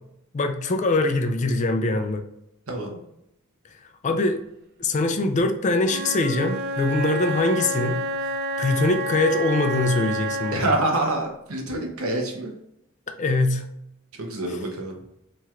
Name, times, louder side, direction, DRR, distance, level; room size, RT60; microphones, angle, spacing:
voice 1, 0.3-2.2 4.0-4.4 4.8-10.7 13.2-13.6 14.5-14.6, left 2 dB, 35° left, 6 dB, 0.4 m, -23 dB
voice 2, 2.7-3.0 10.5-12.5 14.2-14.9, right 2 dB, 90° right, 1 dB, 0.9 m, -26 dB
Wind instrument woodwind instrument, 5.8-10.8, right 1 dB, 50° right, 0.4 m, -29 dB
4.3 x 3.0 x 2.4 m, 0.79 s
head